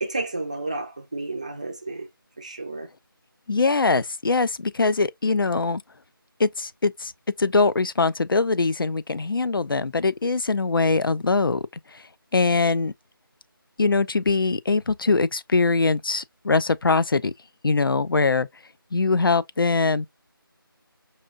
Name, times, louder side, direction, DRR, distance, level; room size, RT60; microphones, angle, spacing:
voice 1, 0.0-2.1 2.4-2.9, right 2 dB, 20° right, 0.4 m, -31 dB
voice 2, 3.5-5.8 6.4-7.1 7.4-11.6 11.9-12.0 12.3-12.9 13.8-17.3 17.6-18.5 18.9-20.1, left 3 dB, 70° left, 0.4 m, -22 dB
4.8 x 2.7 x 2.5 m
figure-of-eight pair, 165°, 12 cm